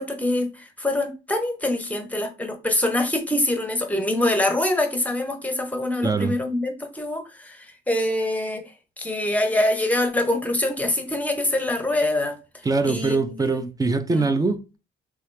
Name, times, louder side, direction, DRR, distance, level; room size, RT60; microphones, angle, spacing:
voice 1, 0.0-12.4 12.8-13.2 14.1-14.3, left 1 dB, 5° left, 0.8 m, -24 dB
voice 2, 6.0-6.3 12.7-14.8, right 3 dB, 20° right, 0.4 m, -23 dB
2.9 x 2.4 x 3.2 m
cardioid pair, 90°, 20 cm